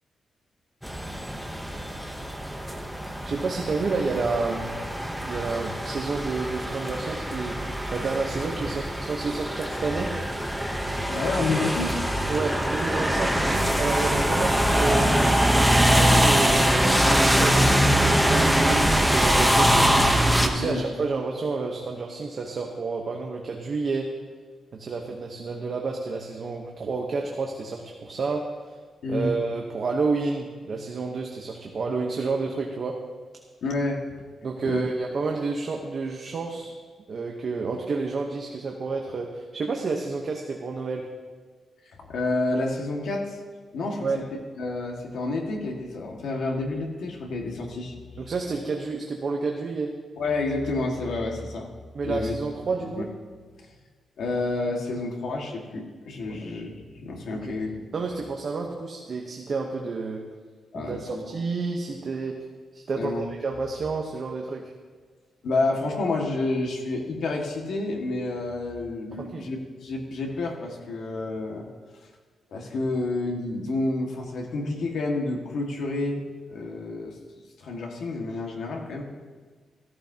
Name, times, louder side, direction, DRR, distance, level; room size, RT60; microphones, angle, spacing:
sound 1, 0.8-20.5, equal, ahead, 0.9 m, -23 dB
voice 1, 3.2-4.7 5.2-7.6 7.9-10.1 12.3-15.2 15.8-19.7 20.4-24.1 24.7-28.8 29.1-32.9 34.4-36.7 37.1-41.1 44.0-44.2 48.2-49.9 51.9-53.1 56.3-56.4 57.4-57.5 57.9-60.2 60.7-62.3 62.7-64.7 69.2-69.5, right 4 dB, 40° right, 1 dB, 1.0 m, -30 dB
voice 2, 11.1-12.0 20.5-20.8 29.0-29.3 33.6-34.0 34.7-34.8 42.1-43.4 43.7-44.2 44.6-47.9 50.2-51.7 52.0-52.4 52.8-53.0 54.2-57.7 60.7-61.2 63.0-63.3 65.4-71.7 72.5-76.2 76.5-77.2 77.6-79.0, left 2 dB, 70° left, 1 dB, 1.8 m, -29 dB
14.5 x 14.0 x 2.9 m, 1.5 s
wide cardioid pair, 160°, 0 cm